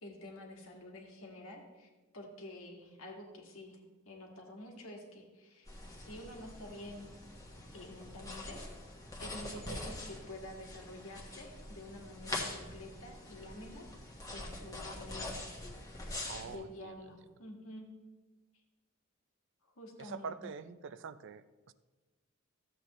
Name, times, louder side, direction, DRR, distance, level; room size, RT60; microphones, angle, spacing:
voice 1, 0.0-3.8 4.0-5.7 6.0-7.1 7.7-8.6 9.2-13.9 14.3-15.5 16.5-17.9 19.6-20.3, left 1 dB, 75° left, 0 dB, 1.8 m, -49 dB
sound 1, 5.7-16.6, left 2 dB, 15° left, 1.3 m, -44 dB
voice 2, 16.3-16.9 20.0-21.7, right 5 dB, 60° right, 13 dB, 0.4 m, -45 dB
13.5 x 7.7 x 3.1 m, 1.2 s
head